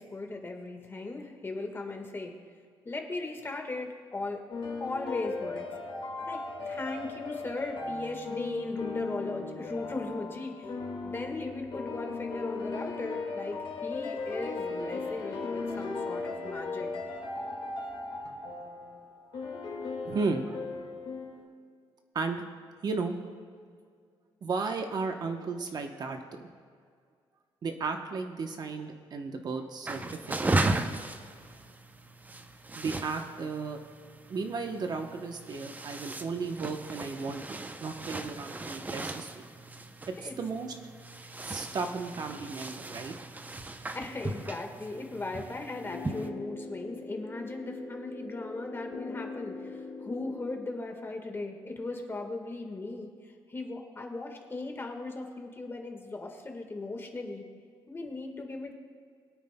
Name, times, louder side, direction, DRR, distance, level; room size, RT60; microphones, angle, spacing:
voice 1, 0.0-2.3 2.8-4.4 4.8-5.6 6.2-10.7 11.0-16.9 40.2-40.4 43.9-57.4 57.9-58.7, left 2 dB, 25° left, 3 dB, 1.5 m, -38 dB
sound 1, 4.5-21.5, left 3 dB, 60° left, 1.9 m, -37 dB
voice 2, 20.0-20.6 22.1-22.4 22.8-23.1 24.4-26.2 27.6-30.5 32.8-33.8 34.3-37.4 37.8-39.4 40.2-40.7 41.4-43.1, right 4 dB, 45° right, 5 dB, 0.9 m, -34 dB
sound 2, 29.9-46.3, right 2 dB, 20° right, 0.6 m, -37 dB
sound 3, 45.8-50.8, left 4 dB, 80° left, 1.4 m, -42 dB
21.5 x 9.2 x 2.2 m, 2.1 s
cardioid pair, 110°, 9 cm